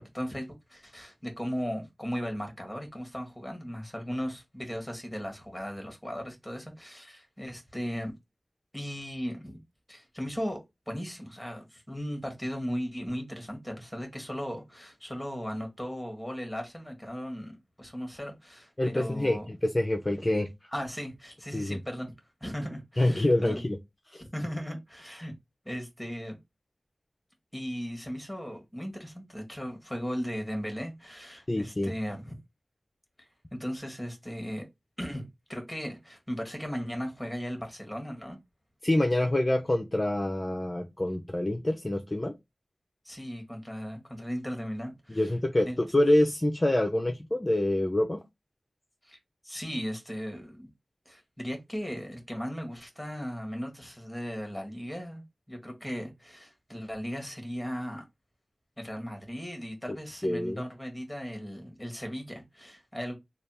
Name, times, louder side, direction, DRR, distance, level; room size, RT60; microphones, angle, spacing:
voice 1, 0.0-8.1 8.7-9.6 9.9-10.6 10.9-19.5 20.7-22.1 22.4-23.6 24.3-25.3 25.6-26.4 27.5-32.4 33.2-34.6 35.0-38.4 43.0-45.3 45.6-45.8 49.0-49.2 49.4-50.7 51.0-58.0 58.8-63.1, equal, 5° left, 1.4 m, -37 dB
voice 2, 18.8-20.5 21.5-21.8 23.0-23.8 24.1-24.2 31.5-31.9 38.8-42.3 45.1-48.2 60.2-60.6, left 1 dB, 30° left, 0.5 m, -26 dB
3.3 x 2.3 x 4.2 m
wide cardioid pair, 70°, 0 cm